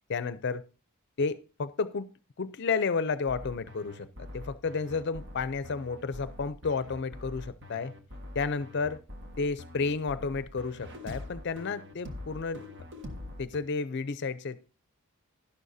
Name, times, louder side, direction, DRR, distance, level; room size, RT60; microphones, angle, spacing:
voice 1, 0.1-0.6 1.2-2.1 2.4-7.9 8.3-9.0 9.4-12.7 13.4-14.6, left 4 dB, 55° left, 0.5 m, -32 dB
sound 1, 3.3-13.6, left 1 dB, 55° right, 1.5 m, -44 dB
12.0 x 11.5 x 2.7 m
head